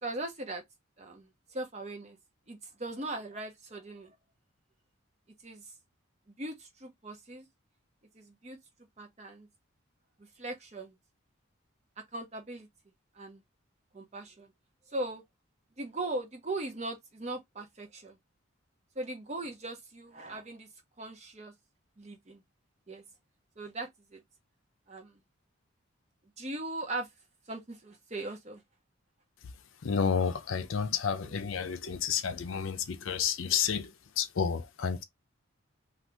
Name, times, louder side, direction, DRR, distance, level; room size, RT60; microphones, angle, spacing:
voice 1, 0.0-0.6 1.0-2.2 2.5-4.1 5.4-5.7 6.4-7.5 8.1-8.6 9.0-9.5 10.2-10.9 12.1-12.7 13.1-13.4 13.9-14.5 14.9-15.2 15.8-18.2 19.0-20.7 21.0-21.5 22.0-22.4 22.9-23.0 23.6-24.2 24.9-25.2 26.4-27.1 27.5-28.6, right 2 dB, 30° right, 0.7 m, -39 dB
voice 2, 29.8-35.0, left 7 dB, 70° left, 0.5 m, -30 dB
2.7 x 2.4 x 3.3 m
head